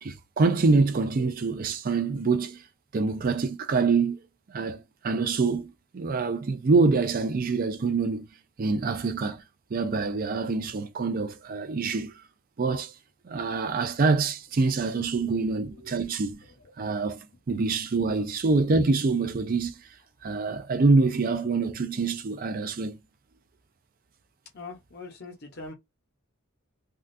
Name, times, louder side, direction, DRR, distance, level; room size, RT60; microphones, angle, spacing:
voice 1, 0.0-2.6 2.9-4.2 4.5-8.3 8.6-9.4 9.7-12.1 12.6-12.9 13.3-16.4 16.8-19.8 20.2-23.0, right 4 dB, 40° right, 0.4 m, -25 dB
voice 2, 15.0-15.7 16.5-16.7 17.9-18.0 24.5-25.7, left 3 dB, 50° left, 0.8 m, -43 dB
3.5 x 2.3 x 2.6 m
head